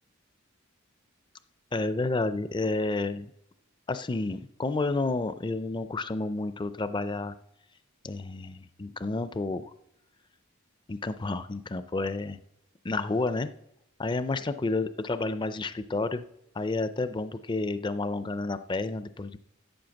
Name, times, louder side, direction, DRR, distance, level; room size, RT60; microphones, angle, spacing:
voice 1, 1.7-3.3 3.9-7.3 8.0-9.7 10.9-12.4 12.8-13.5 14.0-16.2 16.5-19.4, left 3 dB, 20° left, 12 dB, 0.4 m, -30 dB
9.3 x 7.8 x 7.1 m, 0.80 s
head